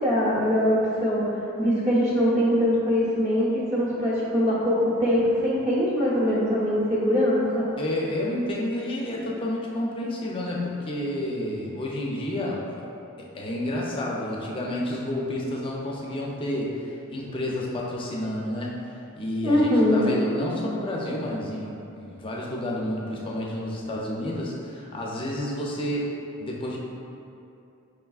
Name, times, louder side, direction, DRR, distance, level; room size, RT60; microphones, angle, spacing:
voice 1, 0.0-1.2 1.6-7.7 19.4-20.2, equal, 30° right, -8 dB, 0.8 m, -22 dB
voice 2, 7.8-12.9 13.2-26.8, left 1 dB, 25° left, -3 dB, 0.4 m, -30 dB
4.8 x 3.4 x 2.3 m, 2.7 s
head